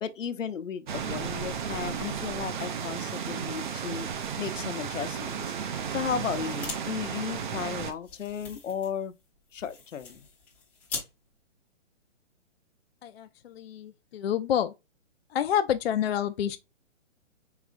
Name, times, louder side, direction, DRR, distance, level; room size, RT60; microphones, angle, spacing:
voice 1, 0.0-4.1 4.4-5.5 5.9-9.1 9.5-10.3, left 7 dB, 85° left, 0.7 m, -34 dB
sound 1, 0.9-7.9, right 7 dB, 40° right, 0.5 m, -34 dB
sound 2, 6.3-6.8 7.1-7.2 7.5-11.1, left 5 dB, 5° left, 0.5 m, -41 dB
voice 2, 13.0-14.7 15.3-16.6, left 9 dB, 55° left, 0.4 m, -28 dB
4.9 x 3.0 x 2.4 m
hypercardioid pair, 145°, 37 cm